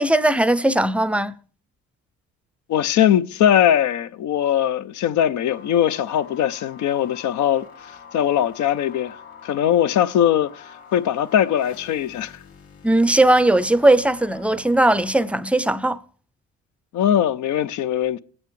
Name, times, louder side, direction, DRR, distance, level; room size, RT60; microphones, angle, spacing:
voice 1, 0.0-1.3 12.8-16.0, right 1 dB, 5° right, 0.5 m, -18 dB
voice 2, 2.7-9.2 9.4-12.3 16.9-18.2, left 10 dB, 75° left, 0.6 m, -20 dB
sound 1, 5.5-15.3, left 6 dB, 50° left, 1.9 m, -45 dB
19.0 x 8.8 x 3.2 m
cardioid pair, 90°, 30 cm